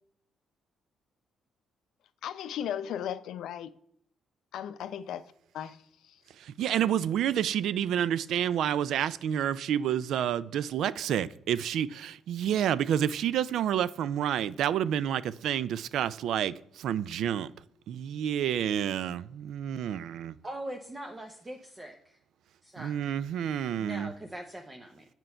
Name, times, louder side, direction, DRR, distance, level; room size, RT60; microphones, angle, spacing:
voice 1, 2.2-3.7 4.5-5.2 5.5-6.2, left 9 dB, 80° left, 0.5 m, -36 dB
voice 2, 6.6-17.5 17.9-20.3 22.8-24.1, right 10 dB, 75° right, 0.3 m, -29 dB
voice 3, 20.4-22.2 22.6-23.1 23.8-25.0, right 1 dB, 20° right, 0.8 m, -42 dB
7.7 x 4.5 x 5.5 m
cardioid pair, 90°, 0 cm